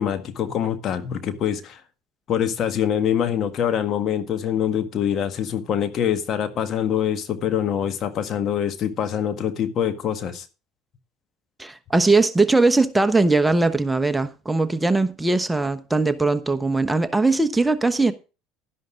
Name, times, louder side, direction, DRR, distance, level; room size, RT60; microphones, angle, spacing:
voice 1, 0.0-1.8 2.3-10.4, left 9 dB, 45° left, 1.7 m, -24 dB
voice 2, 11.6-18.1, right 3 dB, 10° right, 1.0 m, -20 dB
12.0 x 11.0 x 3.7 m
hypercardioid pair, 75°, 0 cm